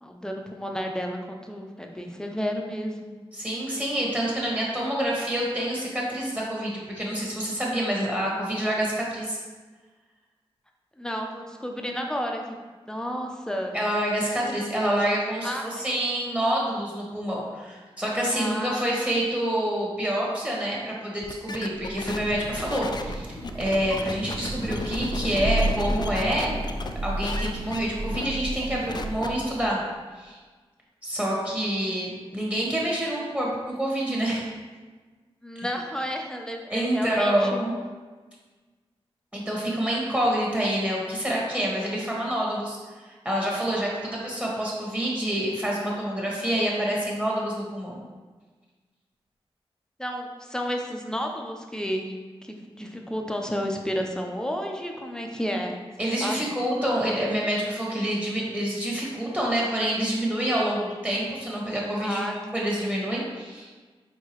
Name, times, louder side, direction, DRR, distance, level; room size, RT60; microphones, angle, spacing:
voice 1, 0.0-3.0 11.0-12.4 12.8-13.8 15.4-15.9 18.3-18.8 35.4-37.6 50.0-55.8 56.2-56.5 62.0-62.4, equal, 5° left, 2 dB, 0.7 m, -31 dB
voice 2, 3.3-9.4 13.7-26.5 27.0-29.8 30.2-30.4 31.0-34.5 35.5-35.7 36.7-37.7 39.3-48.0 56.0-63.8, right 1 dB, 10° right, -4 dB, 1.4 m, -27 dB
sound 1, 21.2-26.9 27.2-27.8 28.1-28.3 28.6-29.3, left 3 dB, 45° left, 0.4 m, -35 dB
Thunder / Rain, 21.8-29.8, right 1 dB, 60° right, 1.0 m, -32 dB
4.7 x 3.7 x 3.0 m, 1.4 s
cardioid pair, 50°, 10 cm